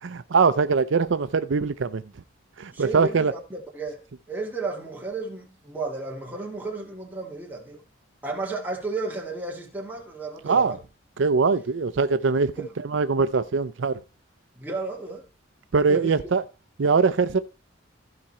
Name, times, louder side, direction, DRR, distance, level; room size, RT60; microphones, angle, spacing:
voice 1, 0.0-2.0 2.6-3.3 10.4-10.8 11.2-14.0 15.7-16.4 16.8-17.4, right 4 dB, 75° right, 0.5 m, -22 dB
voice 2, 2.7-7.8 8.2-10.8 12.6-12.7 14.6-15.3 15.9-16.2, right 3 dB, 10° right, 1.9 m, -33 dB
14.5 x 4.9 x 4.2 m
head